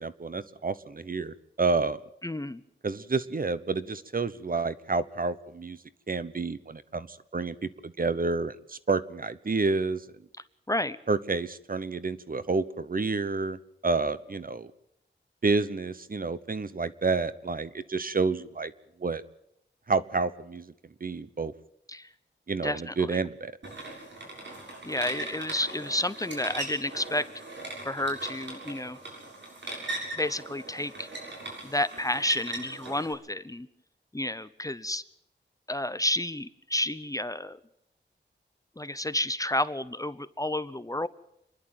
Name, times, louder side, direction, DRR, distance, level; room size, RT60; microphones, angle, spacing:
voice 1, 0.0-2.0 2.8-5.8 6.1-7.5 7.8-10.0 11.1-14.7 15.4-18.7 19.0-19.2 19.9-20.7 21.0-21.5 22.5-23.5, right 4 dB, 45° right, 15 dB, 1.0 m, -29 dB
voice 2, 2.2-2.6 10.7-11.0 21.9-22.1 22.6-23.2 24.8-27.3 27.8-29.0 30.2-31.1 31.6-33.7 34.1-35.0 35.7-37.6 38.8-41.1, left 1 dB, 15° left, 14 dB, 0.8 m, -30 dB
sound 1, 23.6-33.1, right 2 dB, 65° right, 7.1 m, -39 dB
27.5 x 11.0 x 9.3 m, 0.78 s
wide cardioid pair, 90°, 20 cm